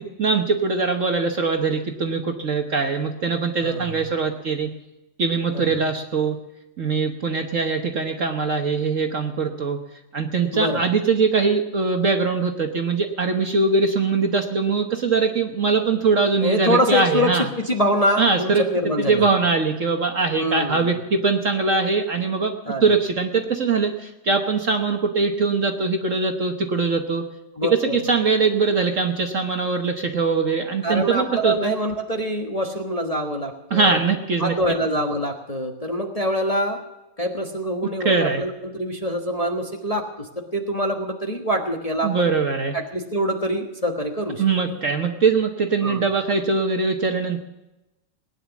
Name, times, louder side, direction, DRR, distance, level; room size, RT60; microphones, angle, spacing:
voice 1, 0.2-4.7 5.2-6.4 6.8-9.8 10.1-17.5 18.2-18.6 19.0-22.5 22.8-27.2 27.7-31.7 33.7-34.5 38.0-38.4 42.0-42.8 44.4-47.4, right 4 dB, 45° right, 4 dB, 1.3 m, -22 dB
voice 2, 3.6-4.0 5.5-5.7 10.5-10.8 16.4-19.3 20.4-21.0 22.7-22.9 27.6-28.1 30.8-34.0 34.4-36.8 37.2-42.3 42.7-44.4 45.8-46.0, equal, 20° left, 2 dB, 1.2 m, -25 dB
19.0 x 10.0 x 7.2 m, 0.96 s
omnidirectional pair, 2.1 m